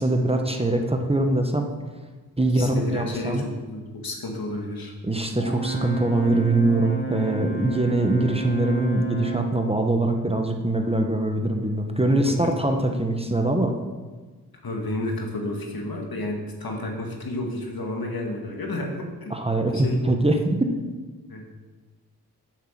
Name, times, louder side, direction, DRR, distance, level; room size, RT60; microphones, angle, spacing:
voice 1, 0.0-1.7 2.4-3.4 5.0-13.7 19.3-20.7, right 2 dB, 15° right, 4 dB, 1.1 m, -23 dB
voice 2, 2.5-4.9 12.2-12.5 14.6-19.4 19.7-20.0 21.3-21.5, left 1 dB, 65° left, 1 dB, 2.0 m, -31 dB
Brass instrument, 5.3-9.6, right 3 dB, 35° left, 3.3 m, -32 dB
7.5 x 5.9 x 7.4 m, 1.3 s
cardioid pair, 50°, 39 cm